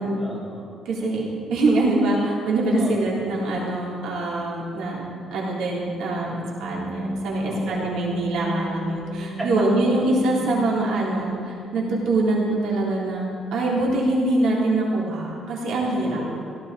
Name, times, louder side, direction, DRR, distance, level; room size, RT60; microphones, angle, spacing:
voice 1, 0.0-0.7 2.7-3.1 7.4-7.9 9.4-9.6 15.9-16.3, right 1 dB, 10° right, -7 dB, 4.2 m, -34 dB
voice 2, 0.9-5.0 5.3-16.2, right 2 dB, 80° right, -4 dB, 3.7 m, -24 dB
sound 1, 6.2-14.0, right 1 dB, 35° right, 2.4 m, -34 dB
17.5 x 15.5 x 4.2 m, 2.4 s
cardioid pair, 145°, 0 cm